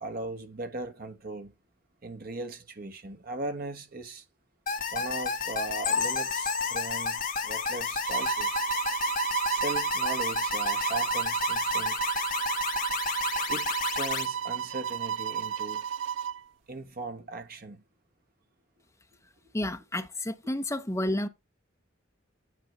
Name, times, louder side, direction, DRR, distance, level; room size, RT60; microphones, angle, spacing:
voice 1, 0.0-1.5 2.0-4.2 4.9-8.6 9.5-12.1 13.5-15.8 16.7-17.8, right 2 dB, 50° right, 1.4 m, -38 dB
sound 1, 4.7-14.3, left 5 dB, 45° left, 1.4 m, -32 dB
sound 2, 5.8-9.5 9.8-10.0 10.4-10.5 11.0-11.1, left 5 dB, 85° left, 1.1 m, -35 dB
sound 3, 8.0-16.4, right 8 dB, 70° right, 0.4 m, -31 dB
voice 2, 19.5-21.3, left 1 dB, 15° left, 0.8 m, -30 dB
9.9 x 3.7 x 5.2 m
head